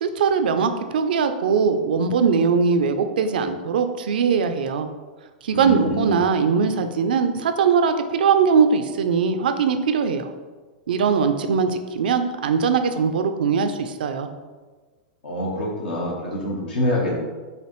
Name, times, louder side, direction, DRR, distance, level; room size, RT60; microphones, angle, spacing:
voice 1, 0.0-4.9 5.4-10.3 10.9-14.3, right 5 dB, 75° right, 8 dB, 0.4 m, -21 dB
voice 2, 5.5-6.2 15.2-17.2, left 1 dB, 75° left, -3 dB, 0.9 m, -26 dB
4.9 x 2.6 x 3.0 m, 1.4 s
hypercardioid pair, 110°, 5 cm